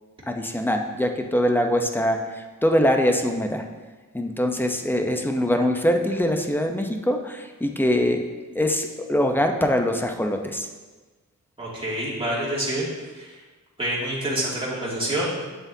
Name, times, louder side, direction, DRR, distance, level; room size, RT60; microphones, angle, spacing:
voice 1, 0.3-3.6 4.1-8.2 8.5-10.7, equal, 5° left, 4 dB, 0.7 m, -23 dB
voice 2, 11.6-12.9 13.1-13.3 13.8-15.6, right 1 dB, 15° right, -7 dB, 2.4 m, -27 dB
8.2 x 7.4 x 2.7 m, 1.3 s
wide cardioid pair, 85°, 32 cm